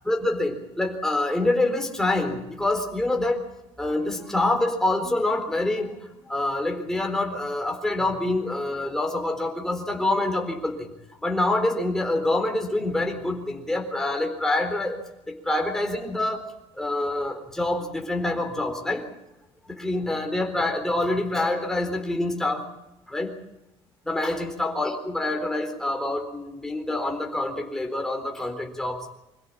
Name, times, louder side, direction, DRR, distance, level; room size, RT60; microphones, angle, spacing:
voice 1, 0.1-3.4 3.8-5.9 6.3-10.9 11.2-15.0 15.5-16.4 16.8-19.0 19.8-22.6 23.1-23.3 24.1-29.0, left 2 dB, 5° left, 2 dB, 4.1 m, -26 dB
26.5 x 16.5 x 8.7 m, 0.88 s
cardioid pair, 175°, 11 cm